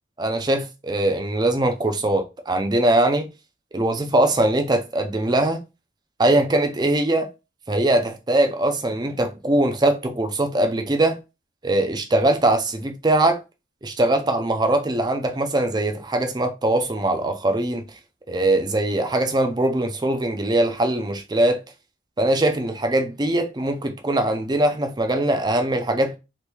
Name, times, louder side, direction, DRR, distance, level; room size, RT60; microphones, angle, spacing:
voice 1, 0.2-3.3 3.7-5.6 6.2-7.3 7.7-11.2 11.6-13.4 13.8-17.8 18.3-21.6 22.2-26.2, right 1 dB, 20° right, 0.4 m, -21 dB
3.0 x 2.6 x 3.4 m
head